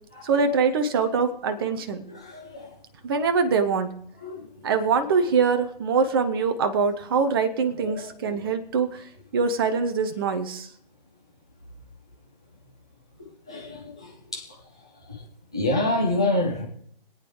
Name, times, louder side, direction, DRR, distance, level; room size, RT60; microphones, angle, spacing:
voice 1, 0.2-2.0 3.0-3.9 4.6-8.9 9.3-10.7, right 5 dB, 25° right, 8 dB, 0.7 m, -23 dB
voice 2, 2.1-2.4 4.2-4.4 7.8-8.4 13.5-13.9 14.3-14.4 15.5-16.7, left 2 dB, 5° left, -4 dB, 0.4 m, -26 dB
25.5 x 8.9 x 3.2 m, 0.71 s
figure-of-eight pair, 140°, 30 cm